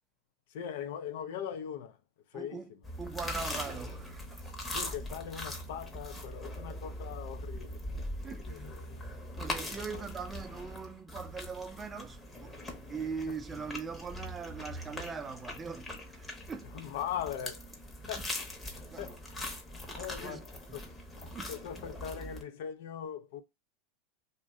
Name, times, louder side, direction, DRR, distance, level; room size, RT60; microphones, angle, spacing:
voice 1, 0.5-2.0 2.3-2.8 4.7-7.9 8.3-9.1 9.9-10.1 13.3-13.4 16.7-17.6 18.1-18.3 18.6-19.5 19.7-20.8 21.5-23.4, left 9 dB, 70° left, 0.4 m, -41 dB
voice 2, 2.3-2.7 3.0-4.5 8.2-8.7 9.1-12.6 12.9-16.7 18.9-19.1 20.2-20.4 20.7-20.8 21.3-21.5, right 5 dB, 20° right, 0.4 m, -41 dB
sound 1, 2.8-22.4, left 1 dB, 15° left, 0.8 m, -41 dB
Bowed string instrument, 3.7-7.2, right 2 dB, 70° right, 0.5 m, -57 dB
2.5 x 2.1 x 3.6 m
hypercardioid pair, 105°, 0 cm